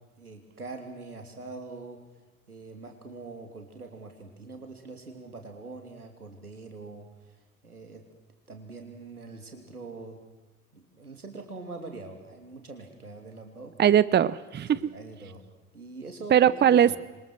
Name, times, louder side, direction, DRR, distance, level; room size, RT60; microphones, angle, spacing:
voice 1, 0.0-2.0 2.5-7.4 7.6-8.1 8.5-10.2 10.7-13.7 14.7-15.4 15.7-16.9, right 3 dB, 90° right, 4 dB, 3.2 m, -43 dB
voice 2, 13.8-14.8 16.3-17.0, right 9 dB, 25° right, 19 dB, 0.8 m, -20 dB
27.0 x 23.5 x 6.3 m, 1.2 s
figure-of-eight pair, 65°, 43 cm